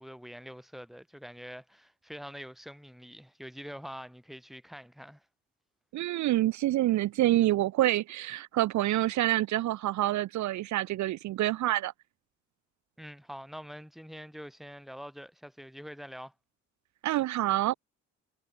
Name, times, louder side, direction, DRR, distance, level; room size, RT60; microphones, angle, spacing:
voice 1, 0.0-5.3 13.0-16.3, equal, ahead, 4.0 m, -45 dB
voice 2, 5.9-11.9 17.0-17.7, right 15 dB, 70° right, 0.6 m, -27 dB
cardioid pair, 90°, 30 cm